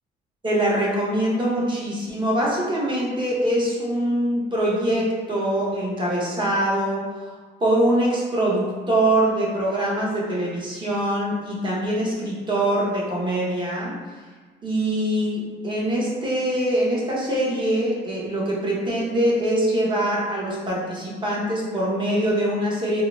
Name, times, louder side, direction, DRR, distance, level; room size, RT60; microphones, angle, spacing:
voice 1, 0.4-7.3 7.6-14.0 14.6-23.0, right 1 dB, 25° right, -5 dB, 0.8 m, -23 dB
3.7 x 2.1 x 2.3 m, 1.4 s
cardioid pair, 100°, 19 cm